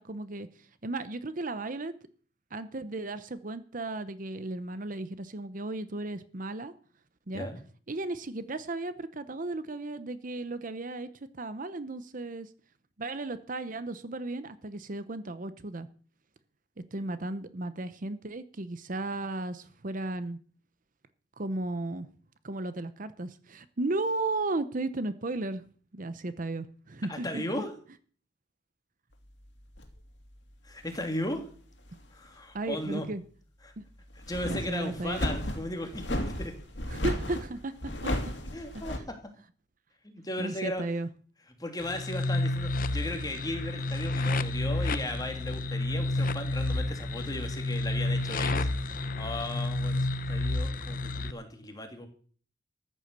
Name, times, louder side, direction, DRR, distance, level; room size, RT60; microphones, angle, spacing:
voice 1, 0.0-1.9 2.5-6.7 7.3-7.5 7.9-12.5 13.0-15.9 16.9-20.4 21.4-22.1 22.4-25.6 25.9-27.6 32.5-33.2 33.8-33.9 34.5-35.2 36.9-38.1 40.4-41.1, right 2 dB, 45° right, 13 dB, 0.9 m, -35 dB
voice 2, 27.1-27.7 30.6-31.5 32.1-33.1 33.6-33.7 34.3-36.5 38.5-39.3 40.0-40.8 41.6-52.1, left 1 dB, 20° left, 5 dB, 2.7 m, -36 dB
sound 1, 29.8-30.0 30.8-31.4 31.9-32.0 34.1-39.0, left 1 dB, 70° left, 2.8 m, -34 dB
sound 2, 41.8-51.3, left 2 dB, 50° left, 0.8 m, -30 dB
14.0 x 9.8 x 6.8 m, 0.44 s
head